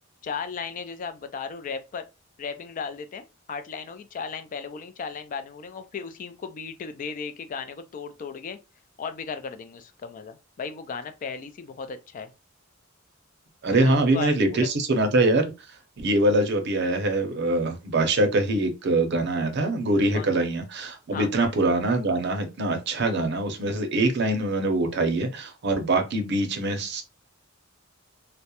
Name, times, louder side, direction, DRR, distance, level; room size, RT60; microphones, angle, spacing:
voice 1, 0.2-2.1 2.4-8.6 9.0-12.3 13.7-14.7 20.1-20.3 21.1-21.3, left 5 dB, 40° left, 0.3 m, -36 dB
voice 2, 13.6-15.4 16.0-27.0, right 2 dB, 55° right, 0.5 m, -23 dB
2.2 x 2.0 x 2.8 m
head